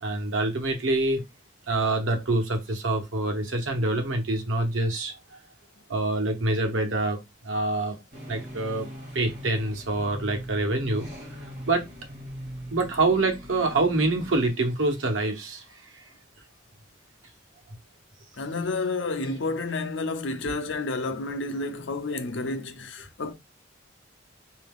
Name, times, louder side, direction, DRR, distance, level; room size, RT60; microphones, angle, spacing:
voice 1, 0.0-1.2 1.7-5.2 5.9-7.2 7.4-8.0 8.3-8.9 9.1-11.1 11.7-11.8 12.7-15.6, right 2 dB, 90° right, 1.0 m, -26 dB
sound 1, 8.1-14.5, equal, 40° right, 2.2 m, -41 dB
voice 2, 18.4-23.3, left 3 dB, 70° left, 0.7 m, -30 dB
3.8 x 2.7 x 3.6 m
head